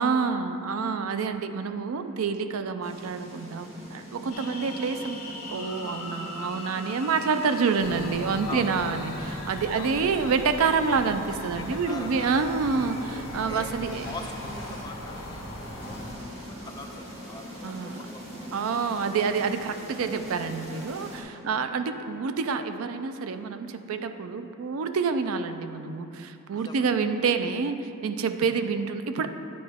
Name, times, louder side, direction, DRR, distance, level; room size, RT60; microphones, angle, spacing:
voice 1, 0.0-5.2 5.5-14.1 17.6-18.0 18.5-29.3, right 5 dB, 70° right, 9 dB, 0.4 m, -27 dB
sound 1, 2.8-21.2, equal, 30° right, 1.3 m, -43 dB
sound 2, 4.3-17.7, left 2 dB, 85° left, 0.8 m, -44 dB
sound 3, 7.8-16.2, left 1 dB, 60° left, 1.1 m, -39 dB
voice 2, 8.5-8.9 9.8-9.9 11.6-12.4 13.5-13.7 14.0-15.4 15.9-18.5 21.5-21.7 26.5-26.8, left 2 dB, 20° left, 3 dB, 0.5 m, -42 dB
10.0 x 4.6 x 3.5 m, 2.7 s
head